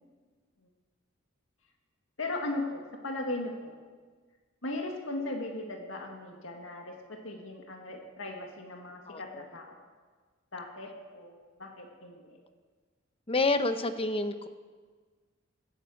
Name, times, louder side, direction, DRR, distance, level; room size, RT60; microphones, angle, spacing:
voice 1, 2.2-3.7 4.6-9.9 10.5-12.4, left 2 dB, 75° left, 2 dB, 2.0 m, -38 dB
voice 2, 9.1-9.5 13.3-14.5, left 2 dB, 30° left, 9 dB, 0.8 m, -29 dB
17.0 x 10.0 x 7.8 m, 1.5 s
head